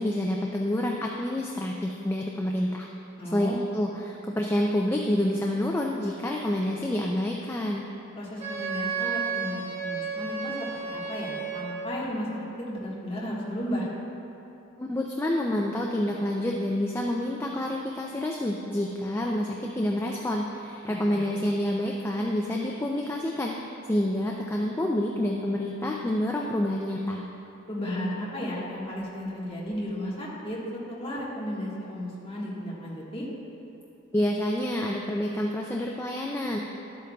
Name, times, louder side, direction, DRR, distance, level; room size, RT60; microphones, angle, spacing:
voice 1, 0.0-2.9 3.3-7.8 14.8-27.3 34.1-36.6, left 1 dB, 10° left, 0 dB, 0.3 m, -28 dB
voice 2, 3.2-3.6 8.1-13.9 20.9-21.2 27.6-30.6 30.9-33.3, equal, 25° left, -6 dB, 1.4 m, -34 dB
Wind instrument woodwind instrument, 8.4-12.0, right 5 dB, 30° right, 1.6 m, -32 dB
11.5 x 8.4 x 2.3 m, 2.9 s
head